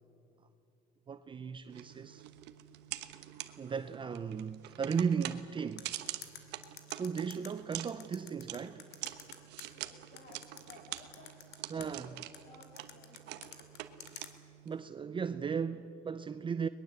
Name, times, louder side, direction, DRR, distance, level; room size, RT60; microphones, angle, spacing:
voice 1, 1.1-2.2 3.6-5.9 6.9-8.9 11.7-12.2 14.6-16.7, right 6 dB, 30° right, 0.6 m, -36 dB
sound 1, 1.7-14.8, right 14 dB, 85° right, 1.2 m, -46 dB
sound 2, 5.8-9.7 10.2-11.9 12.3-14.3, left 9 dB, 80° left, 2.4 m, -49 dB
voice 2, 9.7-11.4 11.7-13.6, left 3 dB, 55° left, 3.4 m, -58 dB
22.5 x 21.0 x 8.0 m
cardioid pair, 110°, 17 cm